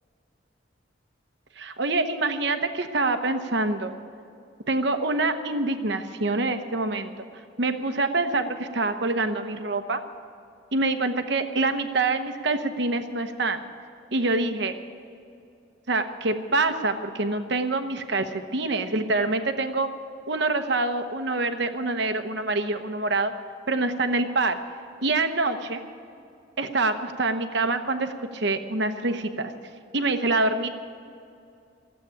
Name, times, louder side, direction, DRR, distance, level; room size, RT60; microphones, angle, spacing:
voice 1, 1.6-3.9 4.7-7.3 7.6-10.0 10.7-13.6 14.1-14.7 15.9-19.9 20.3-23.3 23.7-24.6 25.0-25.8 26.6-29.5 29.9-30.7, right 2 dB, 55° right, 8 dB, 1.0 m, -26 dB
15.0 x 8.4 x 9.9 m, 2.5 s
head